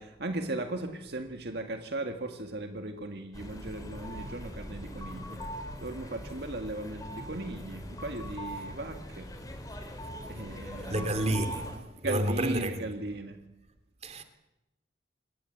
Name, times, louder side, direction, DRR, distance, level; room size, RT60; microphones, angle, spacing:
voice 1, 0.0-5.4 5.8-9.3 10.3-11.1 12.0-13.4, right 2 dB, 60° right, 2.0 m, -37 dB
sound 1, 3.3-11.8, equal, 20° left, 4.1 m, -41 dB
voice 2, 10.9-11.8 12.0-12.9 14.0-14.2, right 1 dB, 35° right, 2.9 m, -30 dB
27.0 x 20.0 x 8.2 m
head